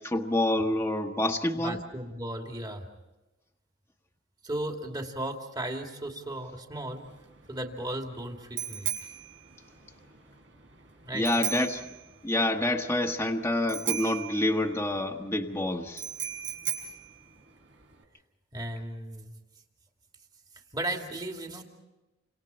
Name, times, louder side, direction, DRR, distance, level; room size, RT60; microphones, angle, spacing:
voice 1, 0.0-1.8 11.1-11.8 12.2-16.0, left 1 dB, 15° left, 1 dB, 1.4 m, -27 dB
voice 2, 1.6-2.8 4.4-7.1 7.5-8.9 11.0-11.3 18.5-19.3 20.7-21.6, right 1 dB, 20° right, 2 dB, 2.7 m, -35 dB
Bicycle bell, 6.9-18.0, right 10 dB, 75° right, 5.7 m, -38 dB
30.0 x 26.5 x 4.4 m, 1.1 s
head